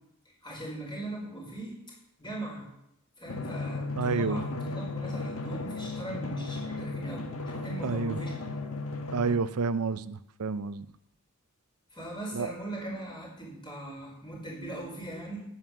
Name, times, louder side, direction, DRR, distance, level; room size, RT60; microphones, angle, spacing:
voice 1, 0.2-1.8 2.2-2.6 3.2-8.3 11.9-15.4, right 1 dB, 20° left, -3 dB, 5.1 m, -40 dB
Drum, 3.3-9.4, left 3 dB, 70° left, 1.4 m, -35 dB
voice 2, 4.0-4.4 7.8-8.2 9.1-10.9 12.3-12.5, right 4 dB, 80° right, 14 dB, 0.6 m, -29 dB
10.5 x 9.6 x 7.4 m, 0.81 s
head